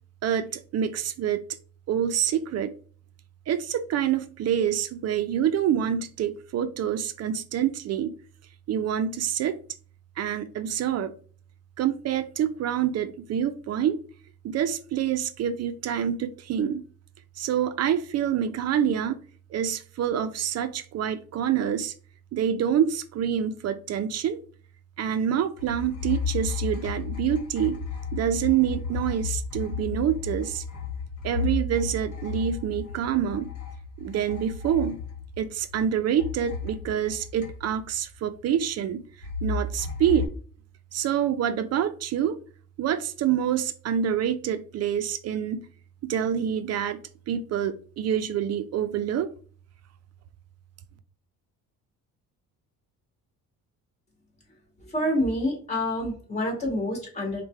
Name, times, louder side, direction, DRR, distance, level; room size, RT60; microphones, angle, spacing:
voice 1, 0.2-1.4 1.9-2.7 3.5-8.1 8.7-9.6 10.2-11.1 11.8-14.0 14.4-16.8 17.4-19.2 19.5-21.9 22.3-24.4 25.0-27.8 28.1-30.6 31.2-33.5 34.0-35.0 35.4-39.0 39.4-40.3 40.9-42.4 42.8-45.7 46.0-47.0 47.3-49.3, right 9 dB, 50° right, 10 dB, 0.4 m, -26 dB
sound 1, 25.6-35.9 36.2-38.0 39.2-40.3, left 5 dB, 60° left, 1.2 m, -33 dB
voice 2, 54.8-57.4, left 1 dB, 20° left, 0 dB, 1.9 m, -27 dB
4.7 x 2.2 x 4.3 m, 0.42 s
cardioid pair, 145°, 34 cm